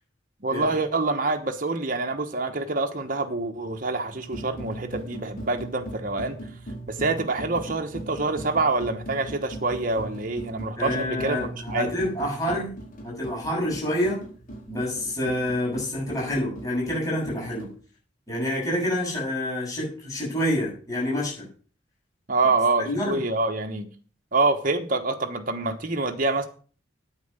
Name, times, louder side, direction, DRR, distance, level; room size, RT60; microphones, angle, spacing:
voice 1, 0.4-6.4 6.9-11.4 11.7-11.9 22.3-23.9 24.3-26.5, right 3 dB, 45° right, 4 dB, 1.1 m, -26 dB
sound 1, 4.1-17.7, right 1 dB, 45° left, 4.6 m, -40 dB
voice 2, 10.8-12.7 13.0-14.2 14.7-17.7 18.3-21.5 22.8-23.2, left 1 dB, 20° left, -5 dB, 6.9 m, -27 dB
9.2 x 9.1 x 6.6 m, 0.41 s
head